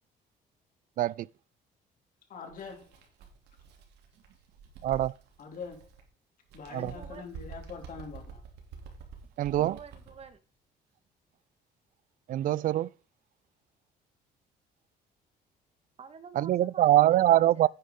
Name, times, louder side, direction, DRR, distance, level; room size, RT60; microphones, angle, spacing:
voice 1, 2.3-3.0 5.4-5.9 6.5-8.4, left 5 dB, 55° left, 2.9 m, -43 dB
Bird, 2.5-6.1 6.4-10.3, right 6 dB, 80° right, 2.9 m, -48 dB
voice 2, 4.8-5.1 6.7-6.9 9.4-9.8 12.3-12.9 16.4-17.7, right 13 dB, 55° right, 0.4 m, -23 dB
voice 3, 6.7-7.2 9.6-10.4 16.0-17.7, right 6 dB, 35° right, 1.5 m, -48 dB
10.0 x 9.9 x 3.7 m
cardioid pair, 110°, 17 cm